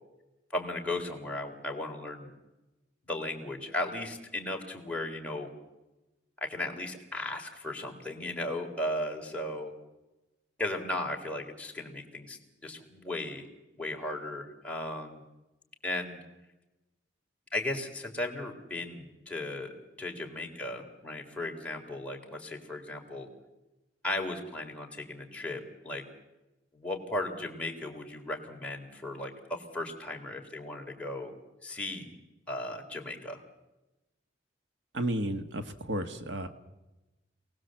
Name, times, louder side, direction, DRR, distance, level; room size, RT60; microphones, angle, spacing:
voice 1, 0.5-2.3 3.1-5.5 6.4-9.7 10.6-13.5 13.8-15.2 15.8-16.2 17.5-19.7 20.0-23.3 24.0-26.0 26.7-31.3 31.6-32.1 32.5-33.4, left 1 dB, 5° left, 0 dB, 3.5 m, -36 dB
voice 2, 34.9-36.5, right 1 dB, 80° right, 8 dB, 1.7 m, -32 dB
28.0 x 19.0 x 7.7 m, 1.0 s
head